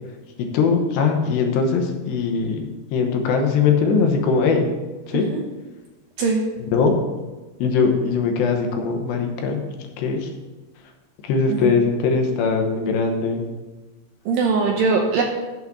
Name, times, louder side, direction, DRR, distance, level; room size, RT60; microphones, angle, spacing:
voice 1, 0.4-4.7 5.1-5.3 6.7-6.9 7.6-9.6 10.0-10.3 11.2-13.5, left 5 dB, 85° left, 3 dB, 3.3 m, -21 dB
voice 2, 5.1-5.4 6.2-6.4 11.5-11.7 14.3-15.2, right 4 dB, 75° right, 1 dB, 2.1 m, -21 dB
7.8 x 6.0 x 7.2 m, 1.2 s
omnidirectional pair, 4.9 m